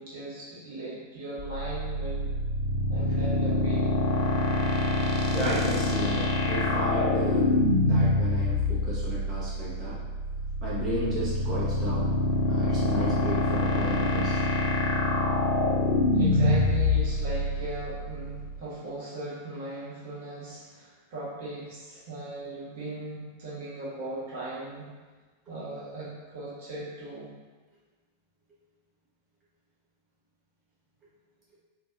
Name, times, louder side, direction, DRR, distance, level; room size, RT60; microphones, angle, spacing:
voice 1, 0.0-2.3 2.9-3.9 16.1-24.9 25.5-27.3, right 2 dB, 55° right, -7 dB, 1.2 m, -38 dB
sound 1, 1.4-18.6, left 2 dB, 45° left, 0.6 m, -26 dB
voice 2, 5.3-7.5 7.8-10.0 10.6-12.1 12.5-14.4, equal, 25° right, -8 dB, 1.1 m, -33 dB
4.5 x 2.8 x 2.5 m, 1.3 s
figure-of-eight pair, 90°, 0 cm